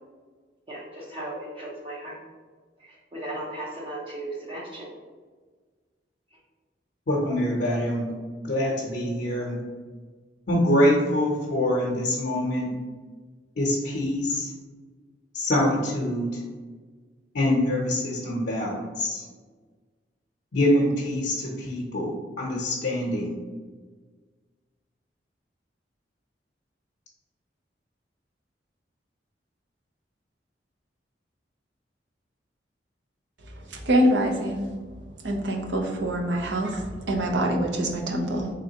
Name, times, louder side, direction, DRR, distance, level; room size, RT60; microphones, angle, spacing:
voice 1, 0.7-2.1 3.1-4.9, right 1 dB, 30° right, -5 dB, 0.6 m, -36 dB
voice 2, 7.1-8.0 8.4-9.6 10.5-12.7 13.6-14.5 15.3-16.4 17.3-19.2 20.5-23.3, left 1 dB, 65° left, -4 dB, 0.7 m, -25 dB
voice 3, 33.5-34.7 35.2-38.5, right 1 dB, 80° right, 1 dB, 0.7 m, -25 dB
3.7 x 3.3 x 2.8 m, 1.4 s
head